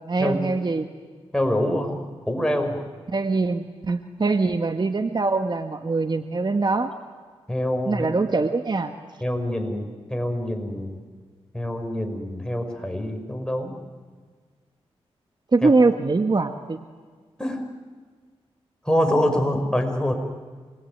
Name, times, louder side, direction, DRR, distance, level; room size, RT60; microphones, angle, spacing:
voice 1, 0.1-0.9 3.1-6.9 7.8-8.9 15.5-16.8, right 3 dB, 45° right, 7 dB, 1.5 m, -23 dB
voice 2, 1.3-2.0 2.3-2.8 7.5-8.1 9.2-11.0 11.5-13.8 15.6-15.7 17.4-17.6 18.9-20.1, left 1 dB, 5° left, 4 dB, 6.1 m, -25 dB
27.5 x 22.0 x 9.5 m, 1.5 s
cardioid pair, 55°, 11 cm